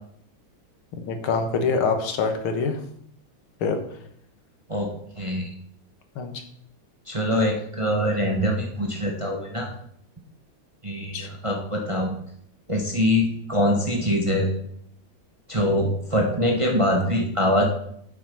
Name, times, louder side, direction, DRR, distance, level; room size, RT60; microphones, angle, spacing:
voice 1, 0.9-2.8 3.6-3.8 6.2-6.3 11.1-11.3, left 4 dB, 80° left, 6 dB, 2.2 m, -25 dB
voice 2, 5.2-5.5 7.1-9.7 10.8-12.1 12.7-14.5 15.5-17.6, equal, 20° right, 1 dB, 1.2 m, -23 dB
8.1 x 7.6 x 5.4 m, 0.68 s
omnidirectional pair, 2.3 m